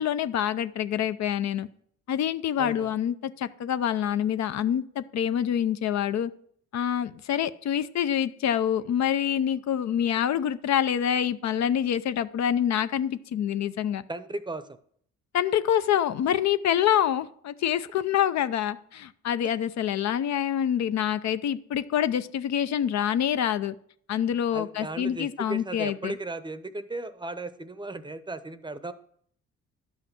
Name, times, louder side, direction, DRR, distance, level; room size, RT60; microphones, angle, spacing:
voice 1, 0.0-1.7 2.1-6.3 6.7-14.0 15.3-23.7 24.1-26.1, left 9 dB, 65° left, 13 dB, 0.6 m, -26 dB
voice 2, 2.6-2.9 14.1-14.8 24.5-28.9, right 2 dB, 15° right, 13 dB, 0.7 m, -36 dB
11.0 x 5.7 x 6.0 m, 0.63 s
cardioid pair, 90°, 30 cm